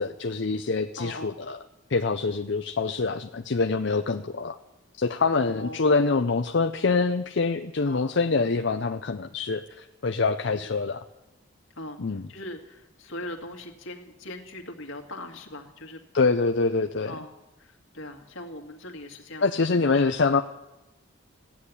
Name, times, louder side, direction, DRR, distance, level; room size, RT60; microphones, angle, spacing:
voice 1, 0.0-1.6 1.9-4.6 5.0-11.0 12.0-12.3 16.1-17.1 19.4-20.4, left 4 dB, 65° left, 6 dB, 0.6 m, -25 dB
voice 2, 1.0-1.3 5.4-5.8 7.8-8.1 10.5-10.7 11.8-12.0 12.3-16.0 17.1-17.3 17.6-20.1, left 1 dB, 80° left, 3 dB, 2.2 m, -40 dB
15.0 x 8.7 x 9.8 m, 0.99 s
head